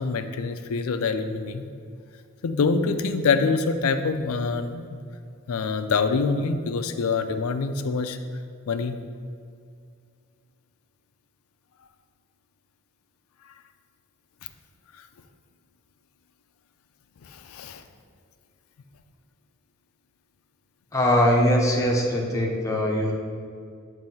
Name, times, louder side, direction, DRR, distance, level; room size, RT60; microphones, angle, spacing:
voice 1, 0.0-1.7 2.4-5.0 5.5-8.2 8.7-9.0 17.2-17.8, left 4 dB, 90° left, 9 dB, 0.4 m, -25 dB
voice 2, 20.9-23.1, equal, 15° left, -1 dB, 0.7 m, -21 dB
7.5 x 2.7 x 5.4 m, 2.3 s
head